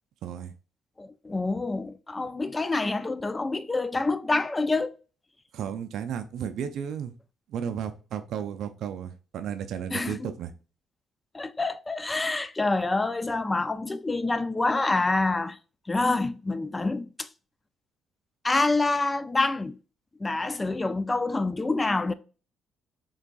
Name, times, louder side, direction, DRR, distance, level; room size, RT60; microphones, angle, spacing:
voice 1, 0.2-0.5 5.5-7.1 7.5-10.5, right 8 dB, 70° right, 0.4 m, -33 dB
voice 2, 1.0-4.9 9.9-10.3 11.3-15.6 15.9-17.3 18.4-19.8 20.2-22.1, left 3 dB, 20° left, 0.3 m, -27 dB
3.9 x 3.4 x 2.2 m
supercardioid pair, 70°, 0 cm